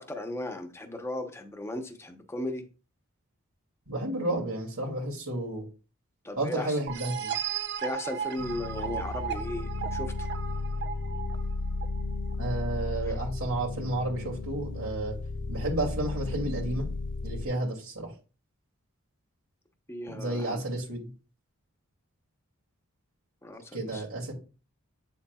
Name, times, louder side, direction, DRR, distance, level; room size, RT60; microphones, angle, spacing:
voice 1, 0.0-2.6 6.2-6.8 7.8-10.3 13.1-13.2 19.9-20.6 23.4-24.0, left 1 dB, 10° left, 0.9 m, -36 dB
voice 2, 3.9-5.6 6.4-7.3 12.4-15.2 15.5-16.9 17.2-18.1 20.1-21.1 23.7-24.3, right 2 dB, 75° right, 2.7 m, -31 dB
sound 1, 6.9-12.3, right 8 dB, 55° right, 0.6 m, -35 dB
sound 2, 8.4-17.5, left 3 dB, 55° left, 0.5 m, -34 dB
8.6 x 7.1 x 2.4 m
head